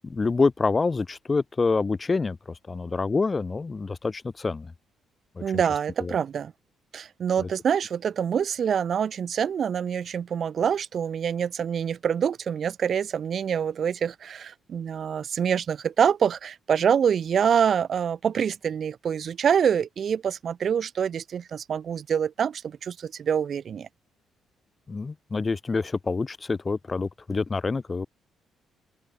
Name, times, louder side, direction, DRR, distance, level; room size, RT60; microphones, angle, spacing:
voice 1, 0.0-4.7 5.3-5.4 6.0-6.2 7.4-7.5 24.9-28.1, left 4 dB, 30° left, 1.7 m, -27 dB
voice 2, 5.4-6.5 6.9-23.9, right 8 dB, 55° right, 0.9 m, -26 dB
open air
cardioid pair, 90°, 0 cm